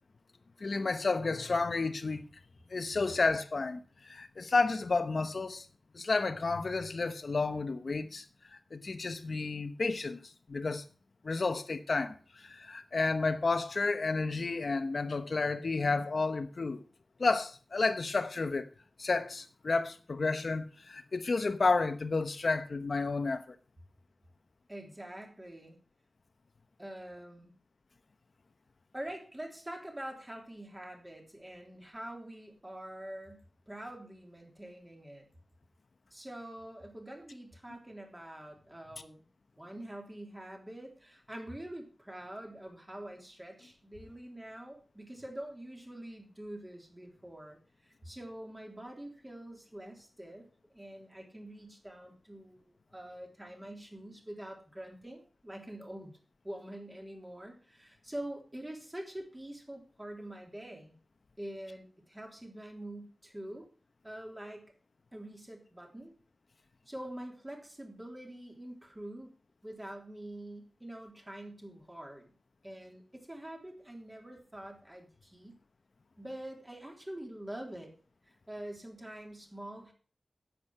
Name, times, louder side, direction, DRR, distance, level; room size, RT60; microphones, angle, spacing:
voice 1, 0.6-2.2 2.7-5.6 5.9-8.2 8.7-10.8 11.2-16.8 17.2-18.7 19.0-23.5, left 3 dB, 60° left, 1.0 m, -31 dB
voice 2, 24.7-25.8 26.8-27.5 28.9-35.3 36.1-39.3 39.6-50.5 50.7-56.2 56.4-61.0 61.4-63.7 64.0-64.7 65.1-66.1 66.9-69.3 69.6-72.3 72.6-75.6 76.2-77.9 78.2-79.9, right 1 dB, 20° right, 3.6 m, -45 dB
10.0 x 8.5 x 6.0 m
wide cardioid pair, 80°, 0 cm